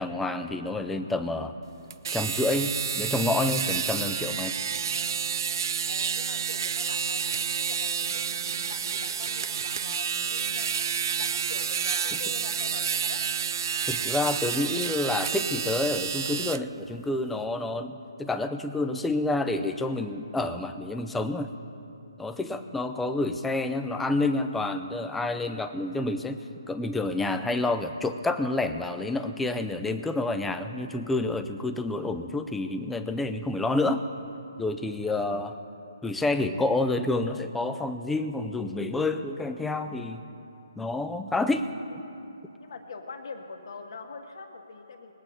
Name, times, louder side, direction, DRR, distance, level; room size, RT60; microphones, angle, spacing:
voice 1, 0.0-1.5 2.1-4.6 13.9-21.5 22.2-26.4 26.7-34.0 34.6-35.5 36.0-40.2 40.8-42.0, left 2 dB, 5° left, 7 dB, 0.4 m, -28 dB
sound 1, 1.9-16.6, right 7 dB, 50° right, 0.4 m, -29 dB
voice 2, 5.9-10.8 11.2-13.2 22.4-22.8 35.1-35.2 41.3-41.6 42.6-45.1, left 4 dB, 60° left, 4 dB, 1.6 m, -44 dB
21.0 x 8.7 x 4.2 m, 2.8 s
hypercardioid pair, 150°, 3 cm